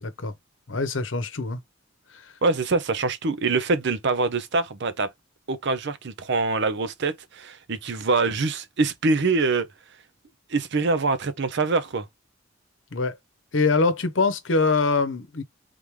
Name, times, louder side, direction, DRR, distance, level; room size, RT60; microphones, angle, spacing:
voice 1, 0.0-0.3 0.7-1.6 12.9-13.1 13.5-15.4, left 3 dB, 70° left, 0.9 m, -23 dB
voice 2, 2.4-5.1 5.5-9.7 10.5-12.1, right 3 dB, 60° right, 0.6 m, -24 dB
3.8 x 3.5 x 3.2 m
head